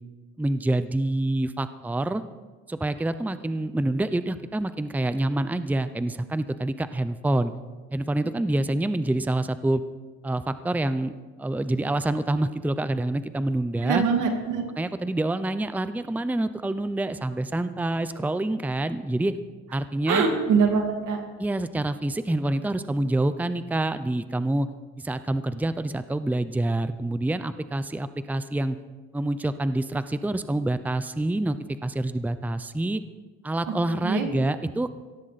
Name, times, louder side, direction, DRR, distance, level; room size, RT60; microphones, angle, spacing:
voice 1, 0.4-2.2 2.7-7.5 7.9-9.8 10.2-11.1 11.4-14.0 14.8-19.3 19.7-20.3 21.4-24.7 25.0-28.8 29.1-33.0 33.4-34.9, right 1 dB, 5° right, 12 dB, 0.6 m, -27 dB
voice 2, 13.8-14.6 20.1-21.2 34.0-34.3, right 5 dB, 85° right, 4 dB, 2.3 m, -23 dB
17.5 x 14.5 x 4.2 m, 1.3 s
cardioid pair, 90°, 30 cm